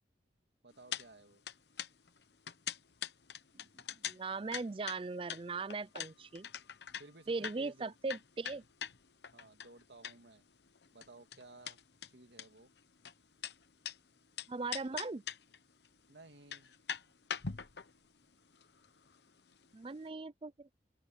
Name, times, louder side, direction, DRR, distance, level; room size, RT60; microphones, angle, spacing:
voice 1, 0.6-1.4 7.0-7.9 9.3-10.4 10.9-11.8 12.1-12.7 16.1-16.7, right 2 dB, 80° right, 2.4 m, -56 dB
sound 1, 0.9-1.1 1.3-10.4 10.7-14.0 14.4-15.6 15.8-15.9 16.3-19.7 20.0-20.1, left 8 dB, 75° left, 0.9 m, -43 dB
voice 2, 3.9-6.5 7.3-8.6 14.5-15.2 19.7-20.7, right 3 dB, 30° right, 0.4 m, -39 dB
open air
head